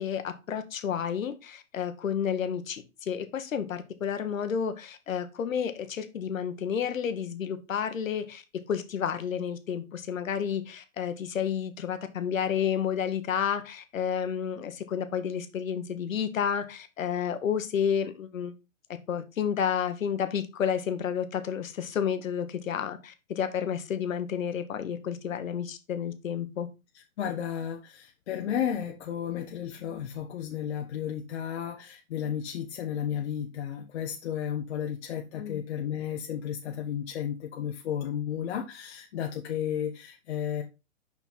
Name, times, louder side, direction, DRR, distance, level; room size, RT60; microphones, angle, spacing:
voice 1, 0.0-18.5 19.1-26.7 35.4-35.6, left 8 dB, 70° left, 1.4 m, -31 dB
voice 2, 27.2-40.6, left 9 dB, 50° left, 1.1 m, -33 dB
6.1 x 5.7 x 4.3 m
hypercardioid pair, 135°, 41 cm